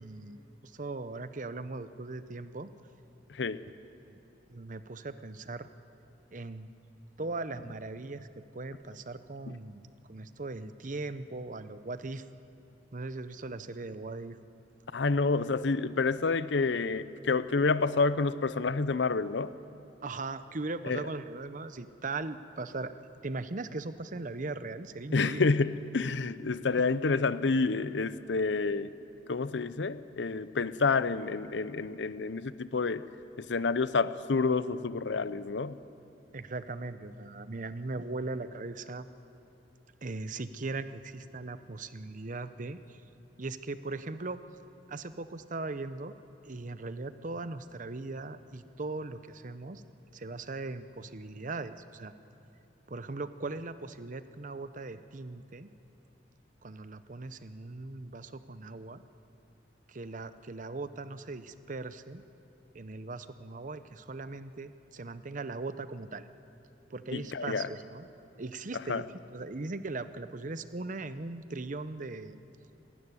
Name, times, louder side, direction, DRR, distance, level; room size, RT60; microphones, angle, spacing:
voice 1, 0.0-2.7 3.7-3.8 4.1-4.2 4.5-5.7 6.3-6.7 7.2-8.3 8.5-12.2 12.9-14.4 20.0-22.9 23.2-25.5 36.3-39.1 40.0-43.0 43.4-44.4 44.9-46.1 46.4-49.8 50.1-52.1 52.9-55.7 56.6-59.0 59.9-62.2 62.7-66.3 66.9-68.1 68.4-69.1 69.3-72.4, right 3 dB, 45° right, 12 dB, 0.8 m, -39 dB
voice 2, 3.3-3.6 9.5-9.6 14.9-19.5 20.8-21.1 25.1-28.9 29.3-33.0 33.4-35.8 67.1-67.7 68.9-69.0, left 4 dB, 80° left, 15 dB, 0.7 m, -29 dB
27.0 x 12.5 x 9.7 m, 2.8 s
head